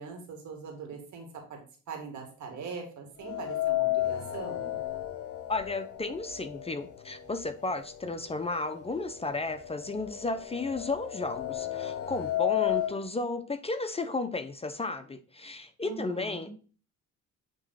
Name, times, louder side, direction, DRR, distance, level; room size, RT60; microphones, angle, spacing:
voice 1, 0.0-1.6 1.9-4.8 15.8-16.5, right 5 dB, 70° right, 2 dB, 2.1 m, -42 dB
sound 1, 3.2-7.3 7.6-7.7 8.7-8.8 9.2-13.0, left 14 dB, 50° left, 1.0 m, -32 dB
voice 2, 5.5-16.5, left 3 dB, 20° left, 9 dB, 0.6 m, -33 dB
8.7 x 3.1 x 4.1 m, 0.39 s
cardioid pair, 90°, 30 cm